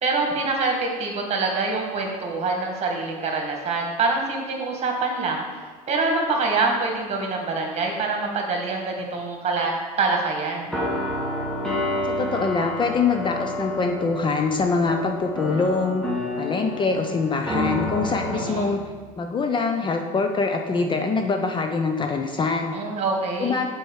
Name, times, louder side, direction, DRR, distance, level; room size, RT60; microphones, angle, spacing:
voice 1, 0.0-5.4 5.9-10.7 18.3-18.7 22.7-23.6, right 3 dB, 35° right, 1 dB, 1.8 m, -25 dB
sound 1, 10.6-19.1, left 1 dB, 5° left, 1.6 m, -29 dB
voice 2, 12.2-16.0 16.4-18.8 19.2-22.7 23.4-23.7, left 4 dB, 25° left, 5 dB, 0.6 m, -24 dB
6.3 x 4.6 x 6.3 m, 1.5 s
supercardioid pair, 105°, 18 cm